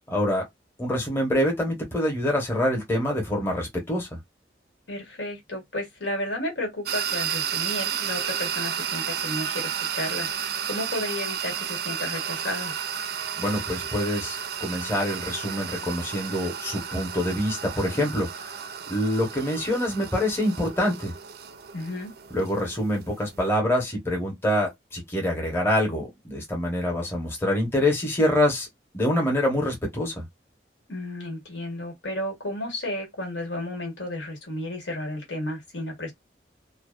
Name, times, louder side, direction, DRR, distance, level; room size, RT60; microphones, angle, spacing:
voice 1, 0.1-0.4 0.8-4.1 13.4-18.5 18.9-21.1 22.3-28.7 28.9-30.2, left 1 dB, 15° left, 0.9 m, -25 dB
voice 2, 4.9-12.7 21.7-22.1 30.9-36.1, left 1 dB, 85° left, 1.2 m, -33 dB
sound 1, 6.9-23.5, right 8 dB, 55° right, 0.4 m, -32 dB
2.6 x 2.1 x 2.3 m
head